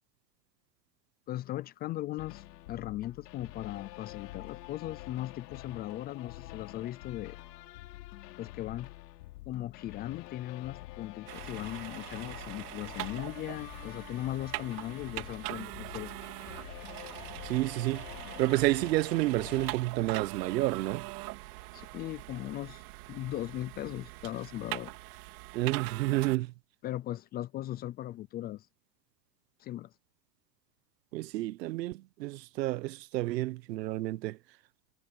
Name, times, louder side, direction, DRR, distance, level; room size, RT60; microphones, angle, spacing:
voice 1, 1.3-7.4 8.4-8.9 9.5-16.1 21.7-22.8 23.1-24.9 26.8-28.7 29.6-29.9, left 14 dB, 20° left, 0.4 m, -38 dB
sound 1, 2.2-19.8, left 17 dB, 75° left, 3.6 m, -47 dB
sound 2, 11.3-26.4, right 22 dB, 65° right, 3.8 m, -42 dB
voice 2, 17.4-18.0 18.4-21.0 25.5-26.5 31.1-34.4, right 17 dB, 85° right, 1.0 m, -30 dB
supercardioid pair, 130°, 48 cm